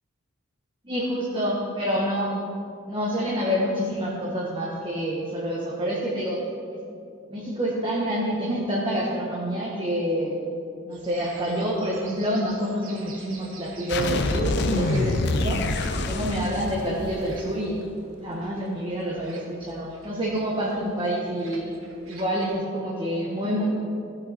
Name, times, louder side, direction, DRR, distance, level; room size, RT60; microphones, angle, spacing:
voice 1, 0.8-2.4 2.9-6.4 6.7-6.8 7.3-10.4 10.9-15.6 16.0-17.8 18.2-21.7 22.1-23.7, equal, 25° right, -4 dB, 1.1 m, -27 dB
sound 1, 10.9-22.5, right 3 dB, 75° right, 1.3 m, -48 dB
sound 2, 13.9-17.6, left 2 dB, 55° left, 0.6 m, -26 dB
15.0 x 6.5 x 4.2 m, 2.6 s
head